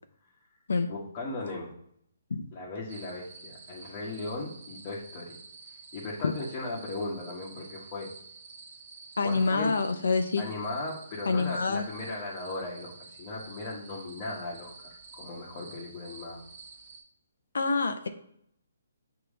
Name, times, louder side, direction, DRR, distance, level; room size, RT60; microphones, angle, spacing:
voice 1, 0.9-1.7 2.5-5.4 5.9-8.1 9.2-9.7 10.4-16.4, left 2 dB, 25° left, -5 dB, 1.2 m, -37 dB
sound 1, 2.9-17.0, right 4 dB, 40° right, 1.3 m, -49 dB
voice 2, 9.2-10.4 11.3-11.8 17.5-18.1, left 4 dB, 80° left, 7 dB, 0.6 m, -26 dB
7.0 x 3.0 x 4.9 m, 0.70 s
hypercardioid pair, 170°, 0 cm